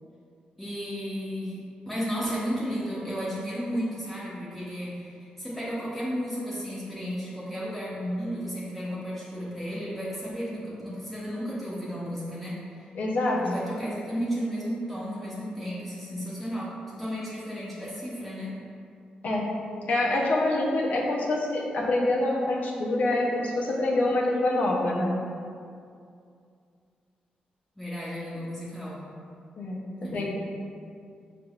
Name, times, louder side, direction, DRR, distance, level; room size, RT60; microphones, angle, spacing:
voice 1, 0.6-1.6 1.9-12.6 13.4-18.6 27.8-29.0 30.0-30.2, equal, 5° left, -9 dB, 0.9 m, -33 dB
voice 2, 12.9-13.4 19.2-19.5 19.9-25.1 29.6-29.8 30.1-30.2, left 2 dB, 65° left, -3 dB, 0.7 m, -25 dB
5.1 x 3.4 x 2.4 m, 2.4 s
cardioid pair, 80°, 3 cm